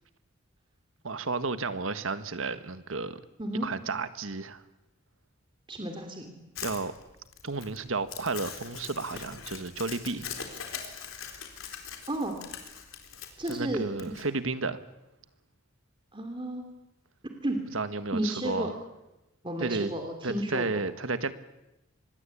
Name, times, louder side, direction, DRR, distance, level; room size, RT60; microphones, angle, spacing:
voice 1, 1.0-3.2 3.6-4.6 6.6-6.9 7.4-10.3 13.5-14.8 17.7-18.7 19.6-19.9 20.2-21.3, right 3 dB, 80° right, 11 dB, 1.5 m, -32 dB
voice 2, 5.7-6.3 12.1-12.4 13.4-13.8 16.1-16.6 17.4-17.6 18.1-18.7 19.4-20.8, right 1 dB, 25° right, 5 dB, 2.7 m, -32 dB
Crumpling crinkling, 6.5-14.2, left 7 dB, 85° left, 4.0 m, -42 dB
25.5 x 21.0 x 8.5 m, 0.94 s
head